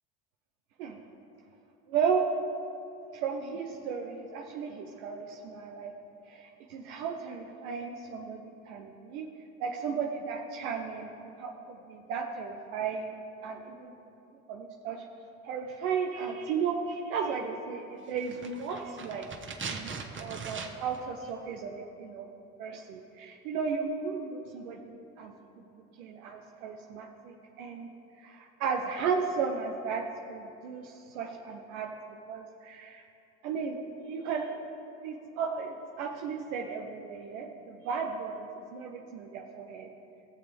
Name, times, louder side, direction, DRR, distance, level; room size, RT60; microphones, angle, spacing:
voice 1, 1.9-2.3 3.1-5.9 6.3-9.3 9.6-13.1 13.4-13.9 14.5-15.0 15.4-19.3 19.7-22.3 22.6-25.6 26.0-27.9 28.2-30.0 30.3-31.9 32.3-33.0 33.4-34.6 35.0-39.9, right 6 dB, 80° right, 1 dB, 0.9 m, -35 dB
sound 1, 18.2-21.0 21.3-21.4, right 5 dB, 30° right, 1.2 m, -40 dB
18.5 x 6.9 x 3.4 m, 2.7 s
hypercardioid pair, 70°, 40 cm